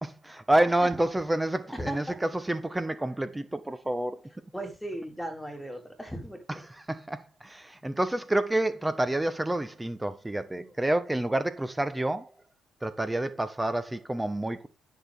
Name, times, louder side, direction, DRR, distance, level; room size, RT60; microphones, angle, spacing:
voice 1, 0.0-4.2 6.5-12.3 12.8-14.7, right 1 dB, 10° right, 1.3 m, -28 dB
voice 2, 1.7-2.2 4.5-6.4 10.6-10.7, right 1 dB, 5° left, 3.3 m, -37 dB
10.0 x 6.6 x 3.8 m
cardioid pair, 75°, 0 cm